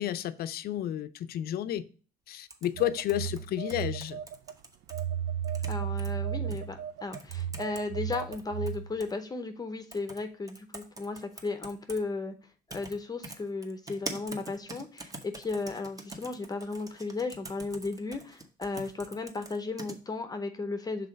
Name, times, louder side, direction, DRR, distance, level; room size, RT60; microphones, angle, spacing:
voice 1, 0.0-1.8 2.3-4.2, left 12 dB, 65° left, 0.6 m, -31 dB
sound 1, 2.5-5.0 5.4-6.1 6.5-6.6 7.1-7.8 8.1-9.1 9.9-10.2 10.5-12.0 12.7-12.9 13.2-20.0, right 2 dB, 20° right, 1.1 m, -44 dB
Telephone, 2.7-4.5 4.9-9.0, right 9 dB, 85° right, 0.5 m, -34 dB
voice 2, 5.7-12.3 12.7-21.1, left 3 dB, 20° left, 0.8 m, -35 dB
5.6 x 3.9 x 5.1 m
cardioid pair, 110°, 17 cm